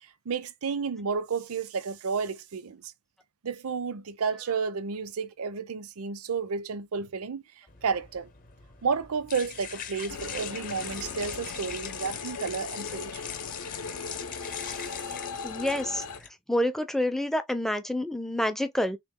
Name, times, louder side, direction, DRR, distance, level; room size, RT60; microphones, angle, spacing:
voice 1, 0.3-2.8 3.4-8.3 8.8-13.3, right 5 dB, 70° right, 0.6 m, -31 dB
sound 1, 7.7-16.3, left 8 dB, 40° left, 0.8 m, -41 dB
sound 2, 10.1-16.2, left 5 dB, 70° left, 0.7 m, -39 dB
voice 2, 15.4-16.0 16.5-19.0, left 1 dB, ahead, 0.5 m, -28 dB
3.5 x 3.0 x 3.6 m
head